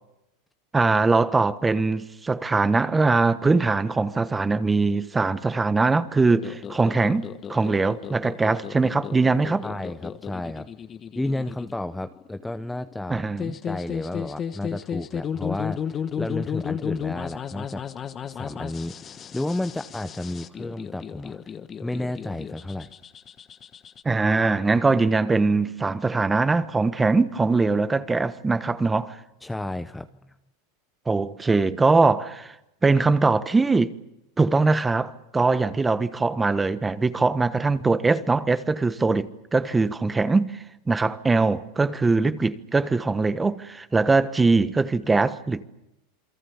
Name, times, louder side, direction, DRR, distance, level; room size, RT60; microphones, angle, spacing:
voice 1, 0.7-9.7 13.1-13.5 24.0-29.2 31.1-32.5 32.8-33.9 34.4-40.6 40.9-45.7, right 3 dB, 15° right, 1.3 m, -22 dB
sound 1, 6.3-24.0, left 8 dB, 30° left, 1.3 m, -34 dB
voice 2, 9.6-10.7 11.2-13.2 13.6-17.8 18.3-21.5 21.8-22.9 29.4-30.3, left 1 dB, 5° left, 0.9 m, -32 dB
28.5 x 22.5 x 7.2 m
hypercardioid pair, 105°, 0 cm